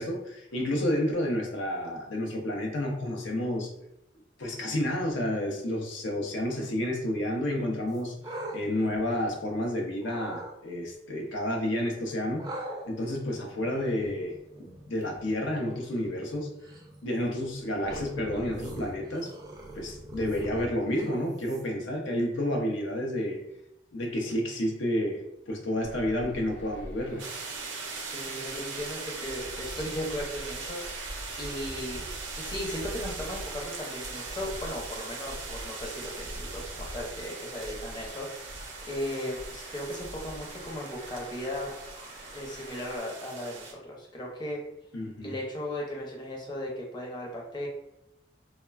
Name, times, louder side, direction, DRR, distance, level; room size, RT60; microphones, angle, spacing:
voice 1, 0.0-3.7 4.4-12.5 12.9-14.3 14.6-16.5 17.0-19.3 19.7-23.4 23.9-27.3 44.9-45.3, left 1 dB, 90° left, 1 dB, 0.6 m, -30 dB
sound 1, 7.9-9.6 10.0-10.5 12.4-21.9, right 1 dB, 20° right, 0.3 m, -42 dB
Traffic noise roadway noise, 25.8-43.0, equal, 45° left, 0.9 m, -45 dB
sound 2, 27.2-43.7, right 4 dB, 90° right, 0.5 m, -40 dB
voice 2, 28.0-31.1 31.4-32.1 32.4-38.6 38.9-41.7 42.3-44.6 45.2-47.7, left 1 dB, 25° left, -2 dB, 0.6 m, -36 dB
3.1 x 2.1 x 2.3 m, 0.82 s
head